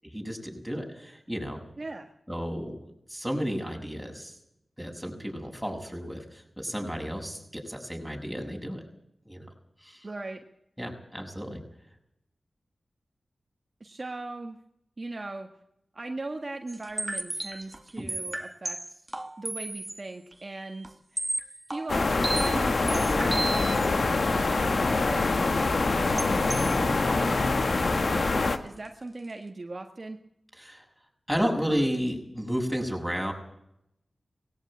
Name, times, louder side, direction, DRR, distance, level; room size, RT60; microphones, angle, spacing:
voice 1, 0.0-1.6 2.3-2.8 3.1-4.3 4.8-8.8 9.2-9.5 9.8-10.1 10.8-11.6 18.0-18.1 30.6-30.8 31.3-33.3, equal, ahead, 2 dB, 6.8 m, -32 dB
voice 2, 1.8-2.1 10.0-10.4 13.8-14.6 15.0-15.5 15.9-19.0 19.4-21.3 21.7-30.2, right 2 dB, 45° right, 4 dB, 1.6 m, -39 dB
sound 1, 16.7-20.0 20.3-20.4 20.8-20.9 21.2-23.9 26.0-26.8, right 1 dB, 25° right, 1.9 m, -34 dB
sound 2, 21.9-28.6, left 3 dB, 65° left, 1.6 m, -25 dB
19.0 x 16.5 x 8.8 m, 0.78 s
cardioid pair, 45°, 0 cm